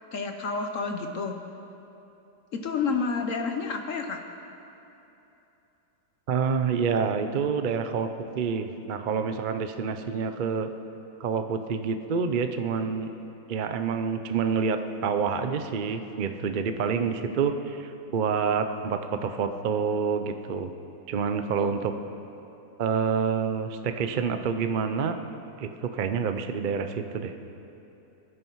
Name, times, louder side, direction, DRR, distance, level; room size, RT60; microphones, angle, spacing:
voice 1, 0.1-1.4 2.5-4.2, left 4 dB, 55° left, 5 dB, 1.0 m, -29 dB
voice 2, 6.3-8.1 8.3-10.7 11.2-13.1 13.5-20.7 21.1-21.9 22.8-25.2 25.6-27.3, right 6 dB, 70° right, 8 dB, 0.4 m, -27 dB
21.5 x 9.8 x 4.7 m, 2.9 s
omnidirectional pair, 1.8 m